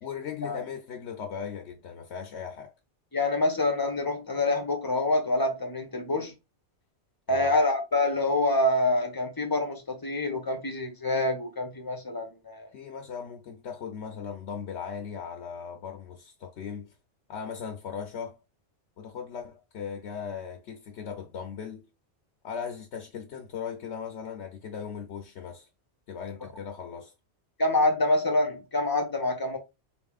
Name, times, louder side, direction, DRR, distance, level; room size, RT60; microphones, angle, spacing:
voice 1, 0.0-2.7 7.3-7.6 12.7-16.9 17.3-18.4 19.0-21.9 22.4-25.7 26.1-27.1, left 7 dB, 75° left, 1.0 m, -38 dB
voice 2, 3.1-6.3 7.3-12.7 27.6-29.6, left 2 dB, 20° left, 0.9 m, -26 dB
4.2 x 3.5 x 2.3 m
omnidirectional pair, 1.2 m